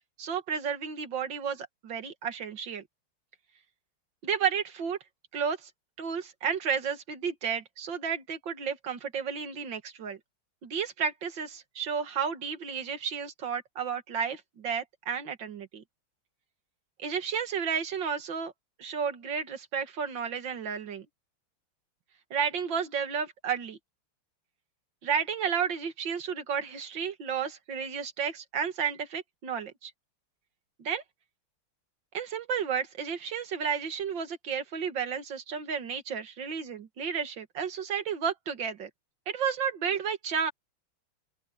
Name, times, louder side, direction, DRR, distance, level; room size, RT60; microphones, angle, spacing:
voice 1, 0.2-2.8 4.2-5.0 5.3-5.7 6.0-10.2 10.6-15.8 17.0-18.5 18.8-21.1 22.3-23.8 25.0-29.9 30.8-31.0 32.1-38.9 39.3-40.5, right 7 dB, 60° right, 2.4 m, -32 dB
open air
omnidirectional pair, 2.3 m